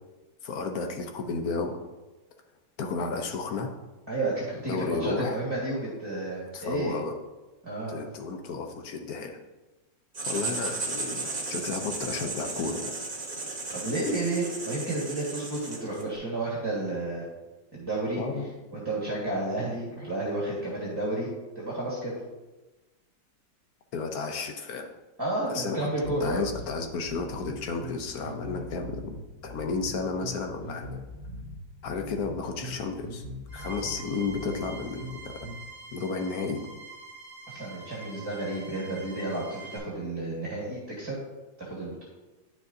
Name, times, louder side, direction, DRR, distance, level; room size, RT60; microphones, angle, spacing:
voice 1, 0.4-1.8 2.8-3.7 4.7-5.4 6.5-7.1 7.9-9.4 10.2-13.0 18.2-18.5 23.9-24.9 25.5-25.9 26.2-29.2 29.4-31.0 31.8-33.2 33.5-35.4 35.9-36.7, left 4 dB, 65° left, 4 dB, 1.1 m, -32 dB
voice 2, 4.1-7.0 7.6-8.0 13.7-17.2 17.7-18.2 18.7-21.3 21.5-22.1 25.2-26.4 37.5-41.2 41.7-42.0, right 2 dB, 15° right, -6 dB, 1.4 m, -31 dB
Writing, 10.1-16.1, right 3 dB, 30° right, 1.1 m, -35 dB
sound 1, 26.0-35.6, equal, 10° left, 1.2 m, -42 dB
sound 2, 33.5-39.8, right 4 dB, 80° left, 2.9 m, -46 dB
9.9 x 6.3 x 2.6 m, 1.1 s
omnidirectional pair, 2.0 m